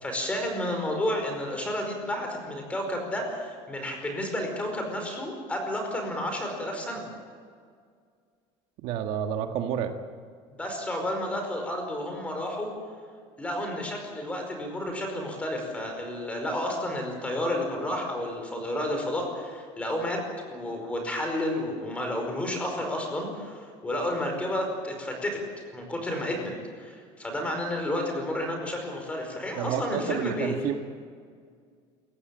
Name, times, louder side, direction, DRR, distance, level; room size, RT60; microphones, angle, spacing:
voice 1, 0.0-7.0 10.6-12.7 13.4-20.2 20.5-25.4 25.7-26.5 26.8-30.6, left 1 dB, 10° left, 3 dB, 5.0 m, -31 dB
voice 2, 8.8-9.9 29.6-30.8, right 9 dB, 60° right, 5 dB, 1.7 m, -29 dB
28.0 x 15.0 x 8.9 m, 2.1 s
cardioid pair, 175°, 12 cm